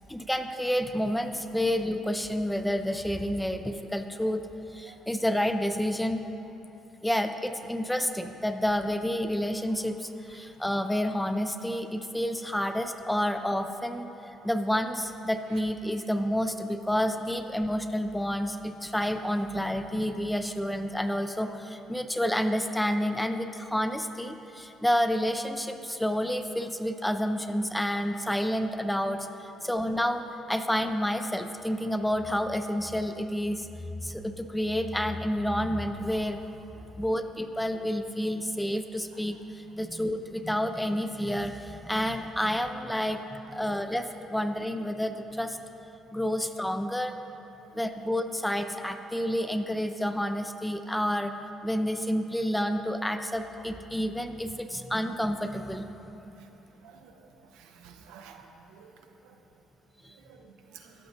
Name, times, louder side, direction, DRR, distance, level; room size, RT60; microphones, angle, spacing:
voice 1, 0.1-4.5 4.7-6.2 7.0-14.1 14.4-33.7 34.0-36.4 37.0-45.6 46.1-47.1 47.7-51.3 51.6-55.9 60.0-60.1, equal, 5° left, 8 dB, 0.4 m, -29 dB
voice 2, 57.6-58.9 60.3-60.9, right 6 dB, 90° right, 4 dB, 0.5 m, -51 dB
13.5 x 5.8 x 2.6 m, 3.0 s
supercardioid pair, 75°, 0 cm